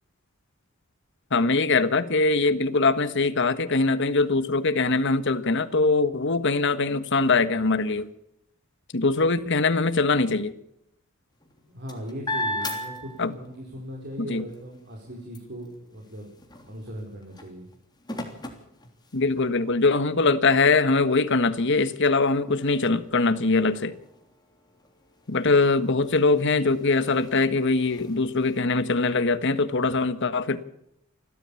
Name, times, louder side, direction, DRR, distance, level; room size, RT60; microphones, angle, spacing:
voice 1, 1.3-8.1 8.9-10.5 13.2-13.3 14.2-14.4 19.1-23.9 25.3-30.6, left 3 dB, 60° left, 12 dB, 1.4 m, -22 dB
sound 1, 11.3-13.7 14.1-19.6 20.2-20.3 20.6-28.6, left 1 dB, 20° left, 3.3 m, -39 dB
voice 2, 11.7-16.3 16.6-17.7, equal, 55° right, -1 dB, 4.7 m, -38 dB
29.0 x 12.5 x 7.1 m, 0.80 s
head